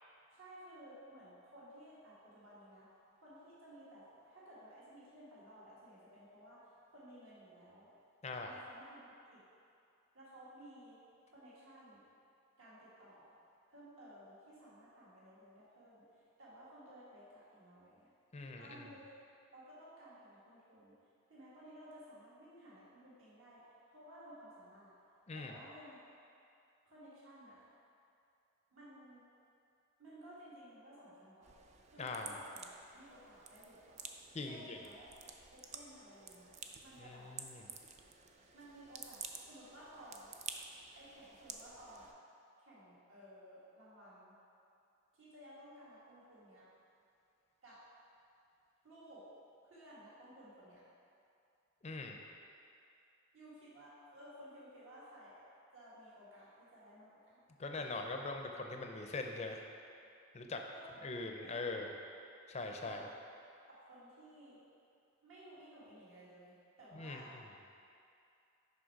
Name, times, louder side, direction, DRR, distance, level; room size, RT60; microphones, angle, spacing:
voice 1, 0.3-2.9 3.2-7.9 8.4-9.4 10.1-11.0 11.3-12.0 12.6-13.3 13.7-16.1 16.4-18.1 18.6-19.1 19.5-21.0 21.3-24.9 25.4-26.0 26.9-27.7 28.7-29.2 30.0-31.6 31.9-32.7 32.9-34.1 34.5-35.1 35.5-36.5 36.8-37.3 38.5-40.3 41.0-42.1 42.6-44.3 45.1-46.7 47.6-47.8 48.8-49.3 49.6-50.8 53.3-55.5 55.7-57.4 60.7-61.0 61.4-61.9 62.8-63.2 63.7-64.6 65.2-67.3, equal, 70° right, -8 dB, 1.7 m, -56 dB
voice 2, 8.2-8.5 18.3-18.9 25.3-25.6 32.0-32.4 34.3-34.8 37.0-37.7 51.8-52.2 57.6-59.6 60.3-60.6 61.0-61.9 62.5-63.1 66.9-67.4, left 3 dB, 30° left, 3 dB, 0.5 m, -42 dB
sound 1, 31.4-42.1, right 6 dB, 30° right, 0.3 m, -51 dB
6.3 x 5.5 x 4.6 m, 2.5 s
head